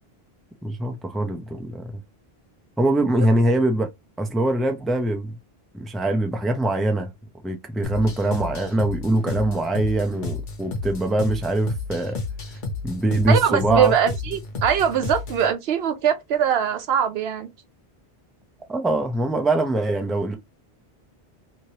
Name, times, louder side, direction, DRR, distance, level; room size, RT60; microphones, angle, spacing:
voice 1, 0.6-1.9 2.8-3.9 4.2-5.3 5.7-7.1 7.4-12.2 12.8-13.9 18.7-20.4, right 1 dB, ahead, 0.5 m, -23 dB
sound 1, 7.8-15.5, left 3 dB, 55° left, 1.0 m, -32 dB
voice 2, 13.3-17.5, right 8 dB, 80° right, 0.9 m, -22 dB
3.2 x 2.9 x 2.8 m
omnidirectional pair, 1.0 m